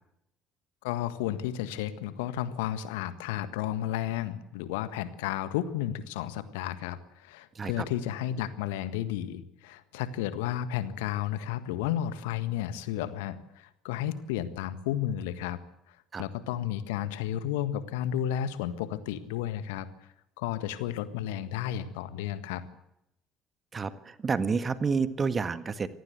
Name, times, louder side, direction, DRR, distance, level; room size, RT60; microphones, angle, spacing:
voice 1, 0.8-15.6 16.2-19.9 20.4-22.6, left 11 dB, 70° left, 13 dB, 1.6 m, -32 dB
voice 2, 7.5-7.8 16.1-16.2 23.7-25.9, right 5 dB, 30° right, 12 dB, 1.7 m, -29 dB
25.5 x 18.5 x 8.1 m, 0.83 s
figure-of-eight pair, 55°, 0 cm